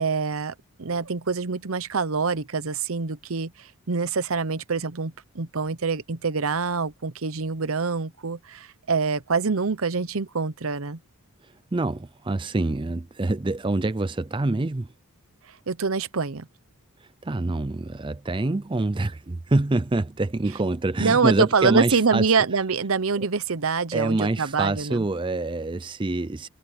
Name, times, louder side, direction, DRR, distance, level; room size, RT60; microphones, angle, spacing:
voice 1, 0.0-11.0 15.5-16.5 21.0-25.0, right 4 dB, 65° right, 0.8 m, -25 dB
voice 2, 11.4-14.9 17.0-22.2 23.9-26.5, right 2 dB, 20° right, 0.5 m, -26 dB
head